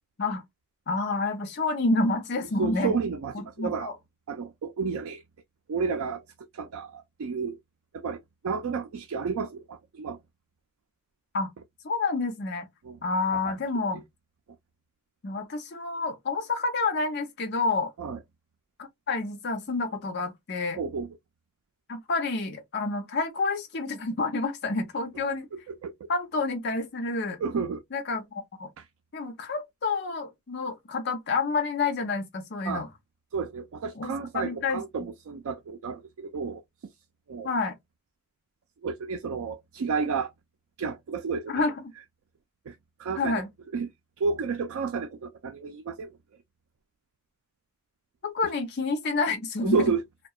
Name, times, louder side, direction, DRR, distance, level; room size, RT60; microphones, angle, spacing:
voice 1, 0.9-2.9 3.3-3.7 11.3-11.5 11.8-12.7 13.0-14.0 15.2-17.9 18.8-20.8 21.9-25.5 26.1-27.4 27.9-28.7 29.1-32.9 34.0-34.8 37.4-37.8 41.5-41.7 43.2-43.5 48.2-49.8, left 3 dB, 50° left, 0.5 m, -28 dB
voice 2, 2.6-3.9 4.3-5.2 5.7-6.2 6.5-7.6 7.9-10.2 12.8-13.0 13.5-13.6 18.0-18.2 20.8-21.2 25.5-26.1 27.4-27.8 28.8-28.9 32.7-32.8 33.3-36.6 37.3-37.5 38.8-40.3 40.8-41.6 42.7-43.4 43.7-43.9 44.2-46.1 49.6-50.0, right 5 dB, 85° right, 0.4 m, -31 dB
2.7 x 2.2 x 2.2 m
head